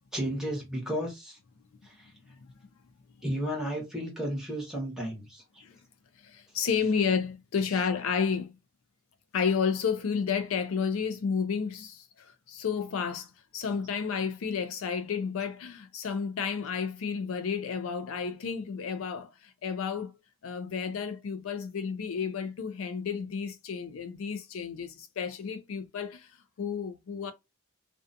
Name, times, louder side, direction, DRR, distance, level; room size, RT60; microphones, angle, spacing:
voice 1, 0.1-1.4 1.8-1.9 3.2-5.4, equal, 5° right, 1.0 m, -33 dB
voice 2, 6.2-8.5 9.3-20.1 20.4-26.3 26.6-27.3, left 6 dB, 80° left, 0.4 m, -31 dB
2.5 x 2.3 x 2.5 m
head